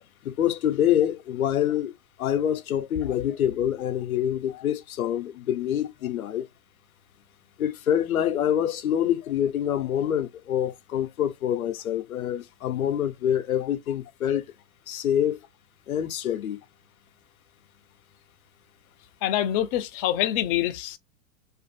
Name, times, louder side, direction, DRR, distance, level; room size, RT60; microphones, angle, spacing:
voice 1, 0.2-1.9 2.2-6.5 7.6-14.4 14.9-15.4 15.9-16.6, left 10 dB, 85° left, 0.7 m, -26 dB
voice 2, 19.2-21.0, left 12 dB, 30° left, 0.4 m, -25 dB
2.5 x 2.5 x 2.5 m
hypercardioid pair, 115°, 41 cm